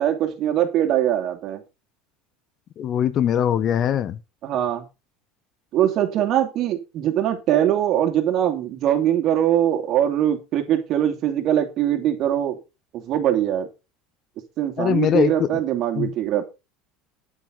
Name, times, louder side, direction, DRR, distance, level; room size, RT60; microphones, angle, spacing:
voice 1, 0.0-1.6 4.4-4.8 5.7-12.6 12.9-13.7 14.6-16.4, right 11 dB, 55° right, 2.8 m, -22 dB
voice 2, 2.8-4.2 14.8-15.5 15.9-16.1, left 9 dB, 45° left, 1.1 m, -21 dB
10.0 x 8.5 x 4.0 m
supercardioid pair, 90°, 0 cm